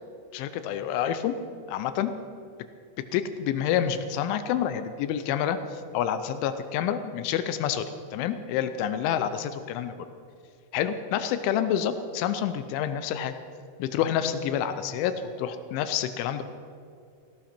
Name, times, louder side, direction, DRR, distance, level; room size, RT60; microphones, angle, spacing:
voice 1, 0.3-1.3 1.7-2.1 3.1-7.8 8.1-9.9 10.7-13.3 13.8-16.4, left 9 dB, 85° left, 10 dB, 3.1 m, -28 dB
18.0 x 17.0 x 4.4 m, 2.3 s
omnidirectional pair, 5.5 m